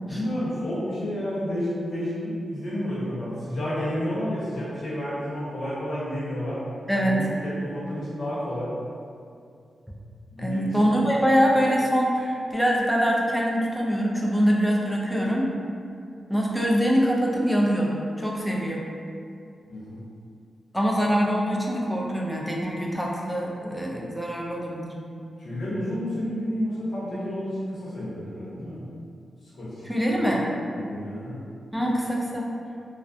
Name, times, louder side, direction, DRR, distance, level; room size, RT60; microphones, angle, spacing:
voice 1, 0.1-6.6 7.0-8.7 10.3-11.5 19.7-20.0 25.4-28.8 29.4-30.1 30.7-31.4, equal, 70° left, -9 dB, 0.8 m, -31 dB
voice 2, 6.9-7.2 10.4-15.5 16.3-18.8 20.7-25.0 29.9-30.5 31.7-32.5, equal, ahead, -3 dB, 0.3 m, -24 dB
2.4 x 2.1 x 2.5 m, 2.4 s
wide cardioid pair, 145°, 0 cm